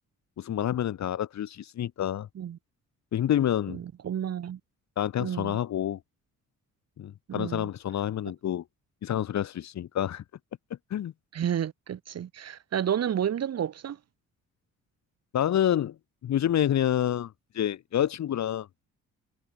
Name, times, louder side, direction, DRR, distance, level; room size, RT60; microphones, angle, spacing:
voice 1, 0.4-2.3 3.1-3.8 5.0-6.0 7.0-8.6 9.0-10.2 10.9-11.1 15.3-15.9 16.2-18.7, left 10 dB, 65° left, 2.4 m, -28 dB
voice 2, 3.7-4.6 5.2-5.6 7.3-7.7 11.3-14.0, right 9 dB, 55° right, 2.4 m, -31 dB
cardioid pair, 90°, 30 cm